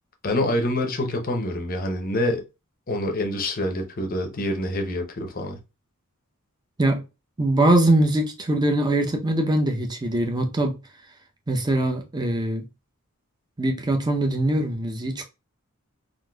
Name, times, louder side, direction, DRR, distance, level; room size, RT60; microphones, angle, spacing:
voice 1, 0.2-2.4 2.9-5.6, left 1 dB, 40° left, 0.6 m, -26 dB
voice 2, 7.4-10.8 11.5-12.6 13.6-15.2, right 1 dB, 20° right, 0.6 m, -22 dB
3.8 x 2.5 x 2.2 m
head